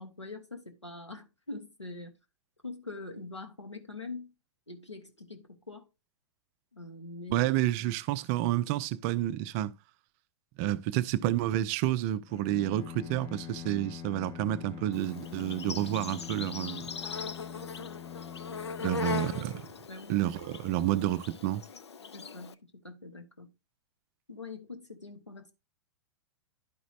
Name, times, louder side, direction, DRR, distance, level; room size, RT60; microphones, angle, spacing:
voice 1, 0.0-2.2 2.6-4.3 4.7-5.8 6.7-7.5 18.8-19.0 19.3-19.4 19.9-20.1 22.1-23.5 24.3-25.5, left 3 dB, 90° left, 1.4 m, -43 dB
voice 2, 7.3-9.7 10.6-16.9 18.8-19.6 20.1-21.6, right 13 dB, 35° right, 0.4 m, -29 dB
Bowed string instrument, 12.3-20.3, left 9 dB, 20° left, 0.7 m, -44 dB
Insect, 14.9-22.5, left 5 dB, 70° left, 0.6 m, -40 dB
11.5 x 5.0 x 2.5 m
figure-of-eight pair, 105°, 15 cm